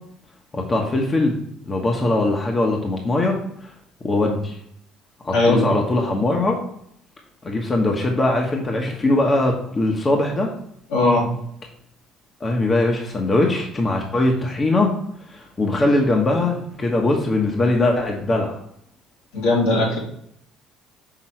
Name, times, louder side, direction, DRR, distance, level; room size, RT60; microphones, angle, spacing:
voice 1, 0.5-1.3 1.7-3.4 4.0-4.6 5.2-6.6 7.4-10.5 12.4-14.9 15.3-18.6, left 2 dB, 30° left, 1 dB, 1.2 m, -21 dB
voice 2, 5.3-5.6 10.9-11.3 19.3-20.0, left 2 dB, 85° left, -5 dB, 2.5 m, -18 dB
6.0 x 3.7 x 4.5 m, 0.70 s
supercardioid pair, 70°, 0 cm